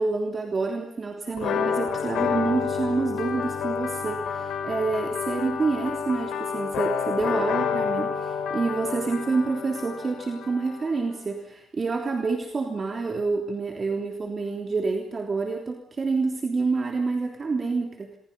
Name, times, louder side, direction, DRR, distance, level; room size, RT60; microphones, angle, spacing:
voice 1, 0.0-18.2, right 4 dB, 35° right, 3 dB, 3.3 m, -28 dB
sound 1, 1.4-11.0, left 7 dB, 75° left, 5.0 m, -29 dB
27.0 x 23.0 x 5.5 m, 0.66 s
cardioid pair, 90°, 0 cm